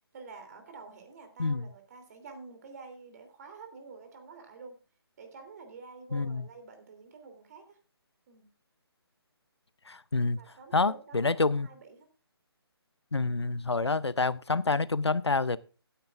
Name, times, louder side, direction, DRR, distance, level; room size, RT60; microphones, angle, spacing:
voice 1, 0.1-4.8 5.2-7.8 8.3-8.5 10.3-12.1, right 4 dB, 40° right, 3.0 m, -49 dB
voice 2, 6.1-6.5 9.9-10.4 10.7-11.7 13.1-15.6, left 3 dB, 85° left, 0.6 m, -27 dB
16.5 x 10.0 x 2.5 m
figure-of-eight pair, 145°, 14 cm